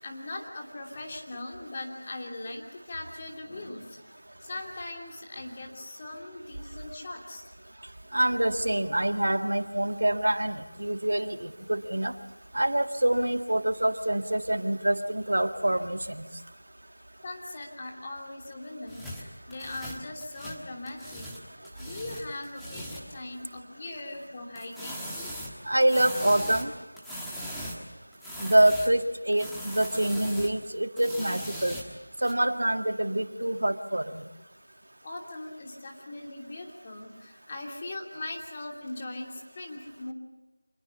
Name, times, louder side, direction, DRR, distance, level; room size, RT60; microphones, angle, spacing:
voice 1, 0.0-4.0 4.4-7.4 17.2-21.3 21.8-25.1 35.0-40.1, left 2 dB, 25° left, 0 dB, 2.9 m, -40 dB
voice 2, 8.1-12.1 12.5-16.3 25.7-26.7 28.4-31.8 32.2-34.2, right 1 dB, 75° right, 7 dB, 1.7 m, -26 dB
sound 1, 18.9-21.4 21.6-23.1 24.5-27.8 28.1-29.0 29.3-30.5 31.0-32.3, equal, ahead, 1.5 m, -39 dB
26.0 x 21.5 x 7.1 m, 1.1 s
figure-of-eight pair, 175°, 0 cm